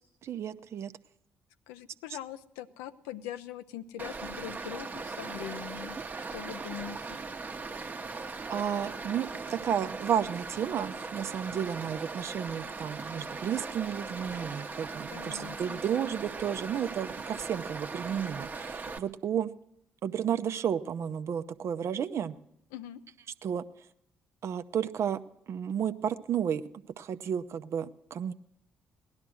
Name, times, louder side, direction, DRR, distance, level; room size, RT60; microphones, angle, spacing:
voice 1, 0.2-0.9 8.5-19.5 20.0-22.4 23.4-23.7 24.4-25.2 25.5-26.6 27.0-28.3, right 8 dB, 50° right, 12 dB, 0.7 m, -32 dB
voice 2, 1.7-6.0 6.3-7.2 15.1-15.8 22.7-23.0, left 11 dB, 75° left, 12 dB, 0.6 m, -42 dB
Stream, 4.0-19.0, right 4 dB, 30° right, 1.0 m, -39 dB
17.5 x 11.5 x 6.2 m, 0.80 s
figure-of-eight pair, 45°, 6 cm